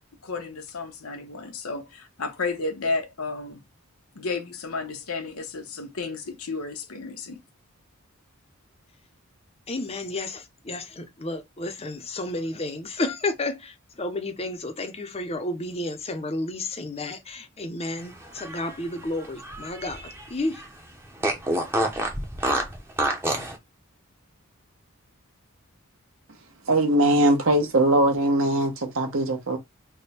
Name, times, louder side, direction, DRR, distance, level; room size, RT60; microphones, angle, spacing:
voice 1, 0.2-3.6 4.1-7.4, left 3 dB, 85° left, 1.0 m, -32 dB
voice 2, 9.7-10.4 10.7-13.5 14.0-20.0 20.3-20.6, left 2 dB, 30° left, 0.6 m, -31 dB
Fart, 18.2-20.3 20.6-20.7 21.2-23.5, right 1 dB, 10° right, 0.7 m, -27 dB
voice 3, 26.7-29.6, right 1 dB, 65° right, 1.0 m, -21 dB
3.4 x 2.2 x 4.2 m
head